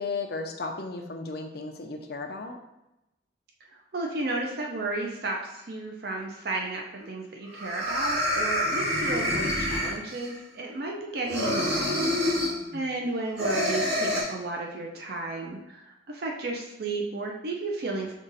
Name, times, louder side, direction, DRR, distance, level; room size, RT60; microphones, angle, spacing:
voice 1, 0.0-2.6 12.4-12.9, left 3 dB, 55° left, 4 dB, 0.6 m, -35 dB
voice 2, 3.9-12.0 12.7-18.1, right 2 dB, 55° right, 0 dB, 0.6 m, -33 dB
sound 1, 7.0-7.1 7.5-10.4 11.2-12.6 13.4-14.2, left 1 dB, 75° right, 1.7 m, -27 dB
5.4 x 2.5 x 4.0 m, 0.91 s
head